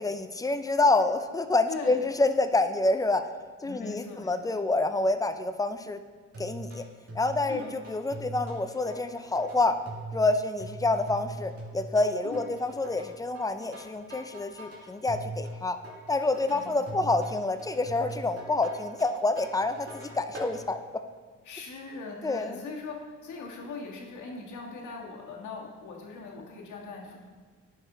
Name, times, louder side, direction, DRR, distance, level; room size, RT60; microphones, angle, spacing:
voice 1, 0.0-3.3 3.6-6.0 6.4-6.9 7.1-9.8 10.1-15.8 16.1-20.8 22.2-22.6, left 2 dB, 10° left, 9 dB, 0.5 m, -27 dB
voice 2, 1.7-2.0 3.6-4.5 7.5-7.6 12.2-12.4 16.5-17.1 21.4-27.2, left 4 dB, 75° left, -1 dB, 1.7 m, -40 dB
sound 1, 6.3-20.5, right 2 dB, 50° right, 2.4 m, -42 dB
11.0 x 4.8 x 3.9 m, 1.5 s
cardioid pair, 90°, 30 cm